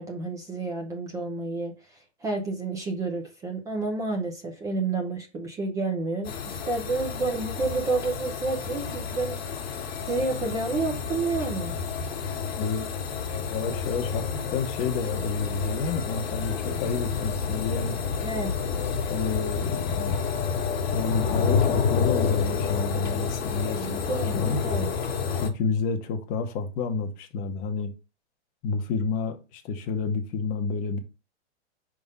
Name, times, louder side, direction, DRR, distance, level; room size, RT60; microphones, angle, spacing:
voice 1, 0.0-9.6 10.0-11.7 18.2-18.5 23.7-24.9, right 3 dB, 10° right, 0.6 m, -30 dB
sound 1, 6.2-25.5, left 6 dB, 55° left, 1.3 m, -29 dB
voice 2, 12.6-12.9 13.5-14.3 14.5-18.0 19.1-20.2 20.9-24.6 25.4-27.9 28.6-31.0, left 4 dB, 25° left, 0.9 m, -29 dB
5.1 x 3.7 x 5.4 m
hypercardioid pair, 155°, 36 cm